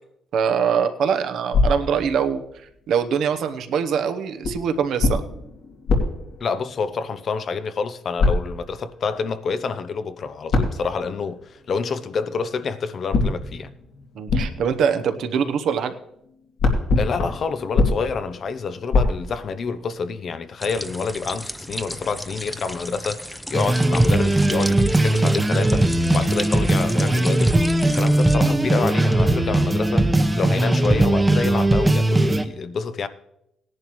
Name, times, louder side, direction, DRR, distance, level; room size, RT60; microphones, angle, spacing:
voice 1, 0.3-2.4 2.9-5.2 14.1-15.9, right 7 dB, 75° right, 0.9 m, -23 dB
sound 1, 1.5-2.7 4.4-7.3 8.2-9.0 10.5-11.6 13.1-16.0 16.3-19.9, left 3 dB, 75° left, 2.6 m, -25 dB
voice 2, 6.4-13.7 17.0-27.5 27.8-33.1, left 5 dB, 55° left, 0.7 m, -28 dB
sound 2, 20.6-28.4, equal, ahead, 0.6 m, -35 dB
sound 3, 23.5-32.5, right 1 dB, 15° right, 0.9 m, -19 dB
17.0 x 10.5 x 3.1 m
cardioid pair, 80°, 0 cm